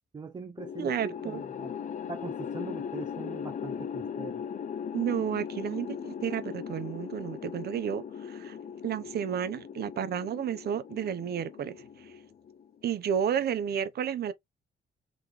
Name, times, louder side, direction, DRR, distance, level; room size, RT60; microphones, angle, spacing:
voice 1, 0.1-1.7 2.1-4.4, right 4 dB, 25° right, 0.5 m, -42 dB
sound 1, 0.6-12.9, left 7 dB, 50° left, 0.5 m, -39 dB
voice 2, 0.8-1.4 4.9-8.6 8.8-11.8 12.8-14.3, right 8 dB, 65° right, 0.7 m, -31 dB
3.9 x 3.0 x 3.3 m
cardioid pair, 105°, 18 cm